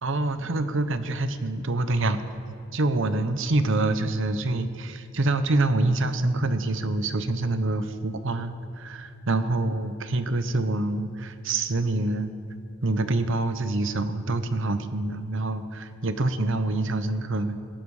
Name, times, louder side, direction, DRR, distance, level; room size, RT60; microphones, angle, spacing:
voice 1, 0.0-2.4 2.7-12.3 12.8-17.6, right 2 dB, 65° right, 11 dB, 0.9 m, -26 dB
18.0 x 15.0 x 4.9 m, 2.4 s
head